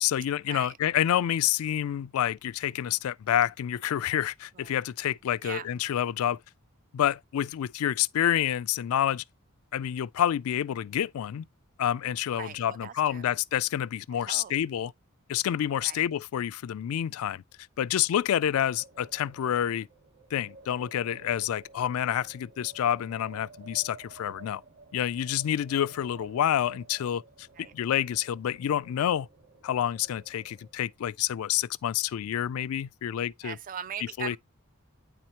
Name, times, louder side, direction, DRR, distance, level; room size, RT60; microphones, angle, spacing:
voice 1, 0.0-6.4 6.9-9.2 9.7-11.5 11.8-14.9 15.3-17.4 17.8-19.9 20.3-24.6 24.9-27.2 27.7-29.3 29.6-33.6 34.0-34.4, left 10 dB, 70° left, 0.3 m, -28 dB
voice 2, 12.4-13.3 14.1-14.5 15.8-16.0 27.6-27.7 33.4-34.4, right 8 dB, 40° right, 0.4 m, -40 dB
Wind, 18.5-31.1, right 3 dB, 55° right, 1.2 m, -53 dB
9.1 x 4.4 x 2.8 m
head